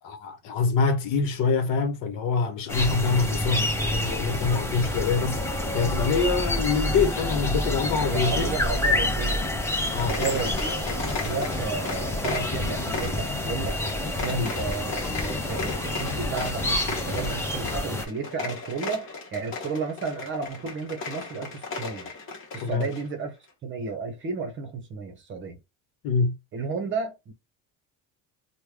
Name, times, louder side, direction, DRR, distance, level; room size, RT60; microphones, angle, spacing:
voice 1, 0.0-8.6 9.9-10.2 14.3-14.5 22.6-22.9 26.0-26.3, left 5 dB, 65° left, 1.0 m, -25 dB
sound 1, 2.7-18.0, left 1 dB, 5° left, 0.7 m, -28 dB
voice 2, 8.0-9.5 10.0-13.8 14.1-22.1 22.5-23.3 23.6-25.6 26.5-27.3, right 5 dB, 30° right, 0.8 m, -33 dB
sound 2, 9.9-23.1, left 4 dB, 35° left, 1.1 m, -36 dB
3.1 x 2.2 x 3.5 m
cardioid pair, 150°, 37 cm